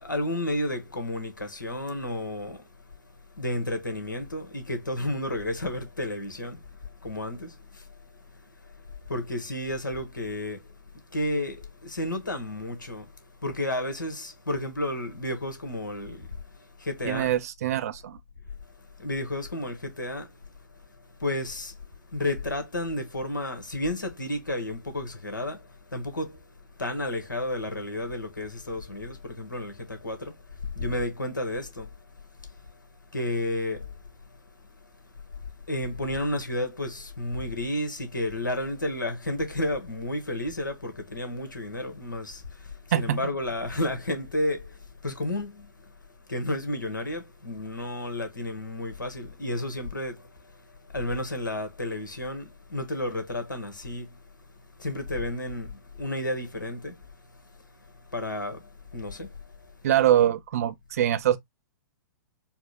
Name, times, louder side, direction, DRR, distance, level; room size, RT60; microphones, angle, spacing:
voice 1, 0.0-2.6 3.4-6.6 7.0-7.5 9.1-10.6 11.1-13.1 13.4-16.3 16.8-17.3 19.0-20.3 21.2-21.7 22.1-25.6 25.9-26.4 26.8-30.3 30.8-31.9 33.1-33.9 35.7-42.4 42.9-44.7 45.0-45.7 46.3-50.2 50.9-54.1 54.8-55.7 56.0-56.9 58.1-58.6 58.9-59.3, left 1 dB, 75° left, 1.3 m, -31 dB
voice 2, 17.1-18.2 42.9-43.2 59.8-61.4, right 11 dB, 50° right, 0.5 m, -23 dB
4.4 x 2.1 x 4.0 m
figure-of-eight pair, 110°, 11 cm